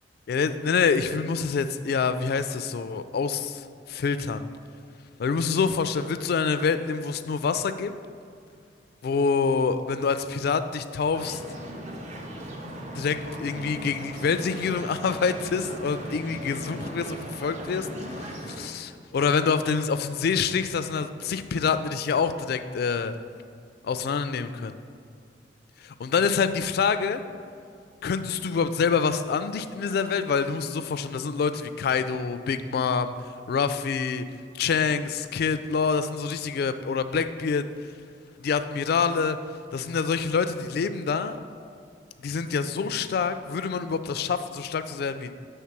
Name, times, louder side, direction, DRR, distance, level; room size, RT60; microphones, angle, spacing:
voice 1, 0.3-4.4 5.2-7.9 9.0-11.4 13.0-23.1 23.8-24.7 25.8-27.2 28.0-33.1 33.5-34.2 34.5-37.6 38.4-39.4 39.7-41.4 42.2-45.3, left 5 dB, 60° left, 10 dB, 0.3 m, -26 dB
sound 1, 11.1-18.7, equal, 40° right, 0.7 m, -38 dB
7.4 x 3.4 x 5.9 m, 2.3 s
head